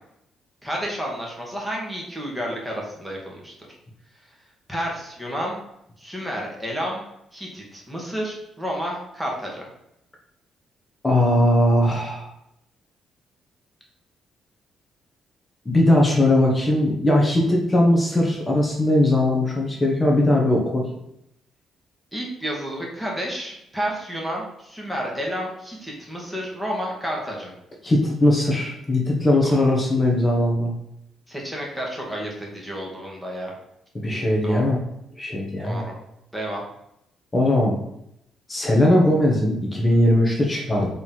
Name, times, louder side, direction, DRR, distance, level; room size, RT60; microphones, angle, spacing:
voice 1, 0.6-3.5 4.7-5.6 6.0-7.0 7.3-9.6 22.1-27.5 29.4-29.5 31.3-33.5 34.4-34.7 35.6-36.0 36.3-36.6, equal, ahead, -3 dB, 2.1 m, -30 dB
voice 2, 11.0-12.3 15.6-20.9 27.8-30.7 33.9-34.8 35.2-35.8 37.3-37.7 38.5-40.9, left 1 dB, 20° left, -1 dB, 1.6 m, -19 dB
4.9 x 3.9 x 5.8 m, 0.79 s
cardioid pair, 90°, 0 cm